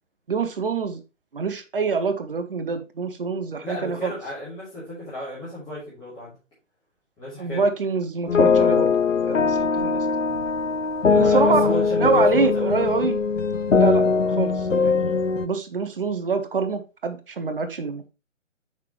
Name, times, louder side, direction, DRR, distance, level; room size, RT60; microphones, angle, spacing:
voice 1, 0.3-1.0 1.3-4.1 7.4-9.0 9.2-10.1 11.1-13.2 13.7-18.1, right 4 dB, 45° right, 8 dB, 1.0 m, -26 dB
voice 2, 3.6-6.4 7.2-7.6 11.0-12.7, left 1 dB, 10° left, -11 dB, 3.2 m, -33 dB
sound 1, 8.3-15.5, left 5 dB, 75° left, 0.8 m, -21 dB
7.6 x 5.9 x 3.1 m, 0.30 s
figure-of-eight pair, 145°, 38 cm